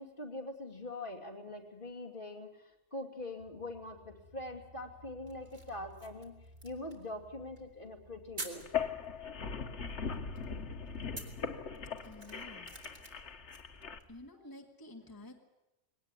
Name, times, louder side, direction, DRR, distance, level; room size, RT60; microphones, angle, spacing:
voice 1, 0.0-6.3 6.6-8.7 11.5-11.6 14.4-14.5, left 2 dB, 50° left, 2 dB, 2.8 m, -43 dB
sound 1, 3.4-13.8, equal, 65° right, 2.6 m, -62 dB
sound 2, 5.2-14.3, right 2 dB, 40° right, 3.1 m, -52 dB
sound 3, 8.6-14.0, left 6 dB, 80° left, 1.5 m, -39 dB
voice 2, 12.1-12.8 14.1-15.4, left 1 dB, 20° left, 3 dB, 1.8 m, -51 dB
21.0 x 18.0 x 9.9 m, 0.95 s
omnidirectional pair, 1.2 m